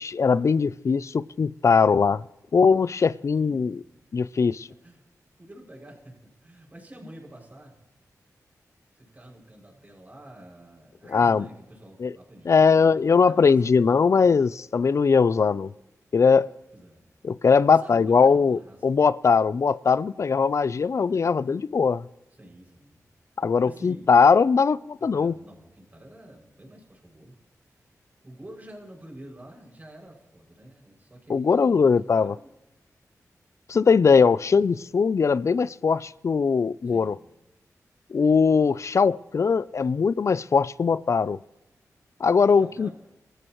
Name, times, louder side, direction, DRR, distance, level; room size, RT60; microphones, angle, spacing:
voice 1, 0.0-2.2 2.5-3.8 4.1-4.7 11.1-11.4 12.0-12.1 12.5-15.7 16.1-16.5 17.2-22.1 23.4-25.3 31.3-32.4 33.7-37.2 38.1-41.4 42.2-42.9, left 5 dB, 50° left, 0.4 m, -20 dB
voice 2, 3.4-3.8 4.7-5.0 5.4-7.8 8.9-13.9 16.7-17.1 17.6-18.8 22.3-23.0 23.6-24.1 25.0-27.4 28.2-32.5 36.8-37.3 38.2-38.8 42.5-43.0, right 1 dB, 25° right, 6.4 m, -47 dB
24.5 x 14.5 x 3.1 m
cardioid pair, 75°, 6 cm